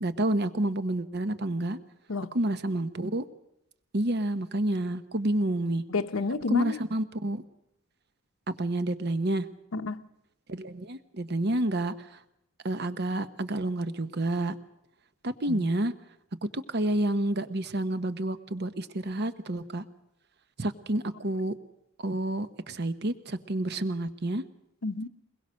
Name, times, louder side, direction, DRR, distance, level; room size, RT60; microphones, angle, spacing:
voice 1, 0.0-1.8 2.3-3.2 3.9-5.8 6.5-7.4 8.5-9.5 10.5-12.2 12.6-14.5 15.2-15.9 16.5-19.8 20.6-21.5 22.0-24.4, right 1 dB, 55° right, 12 dB, 1.0 m, -29 dB
voice 2, 5.9-6.8 9.7-10.1 15.5-15.7 24.8-25.1, left 3 dB, 75° left, 11 dB, 0.9 m, -30 dB
22.5 x 21.5 x 6.4 m, 0.82 s
head